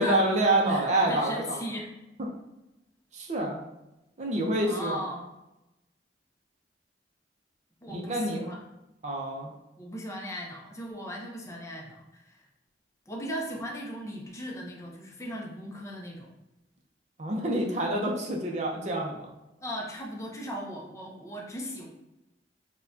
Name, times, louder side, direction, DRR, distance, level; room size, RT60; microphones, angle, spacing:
voice 1, 0.0-1.6 3.1-3.6 4.2-5.0 7.9-8.5 9.0-9.5 17.2-19.3, right 1 dB, 40° right, -1 dB, 0.6 m, -27 dB
voice 2, 0.7-1.9 4.6-5.2 7.8-8.6 9.8-12.5 13.1-16.3 19.6-21.9, equal, 15° left, -1 dB, 0.6 m, -37 dB
4.4 x 2.2 x 2.5 m, 0.93 s
head